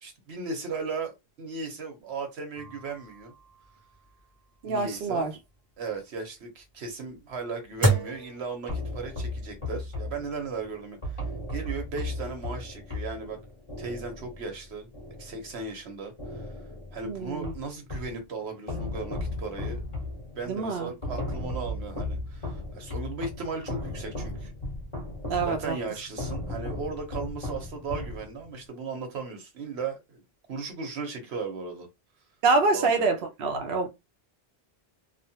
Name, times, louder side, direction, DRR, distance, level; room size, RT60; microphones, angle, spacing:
voice 1, 0.0-3.3 4.6-5.3 5.8-11.2 11.5-13.4 13.8-14.9 15.2-16.5 16.9-19.8 20.3-24.5 25.4-30.2 30.5-31.9 32.7-33.0, right 4 dB, 90° right, 1.2 m, -36 dB
sound 1, 2.6-9.2, right 2 dB, 25° right, 0.6 m, -32 dB
voice 2, 4.6-5.3 17.0-17.5 20.5-20.9 25.3-25.7 32.4-33.9, right 3 dB, 70° right, 0.8 m, -26 dB
sound 2, 8.7-15.8 16.2-18.2 18.7-28.6, left 1 dB, 30° left, 1.2 m, -36 dB
3.0 x 2.1 x 2.8 m
omnidirectional pair, 1.1 m